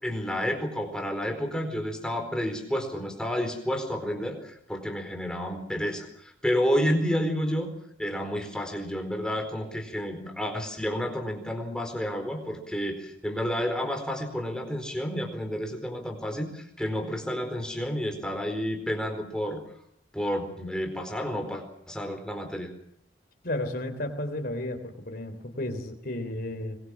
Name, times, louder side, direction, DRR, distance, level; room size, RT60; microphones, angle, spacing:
voice 1, 0.0-19.6 20.1-22.7, equal, 5° left, 4 dB, 4.4 m, -30 dB
voice 2, 23.4-26.8, left 1 dB, 50° left, 6 dB, 3.5 m, -33 dB
25.0 x 21.5 x 7.3 m, 0.71 s
head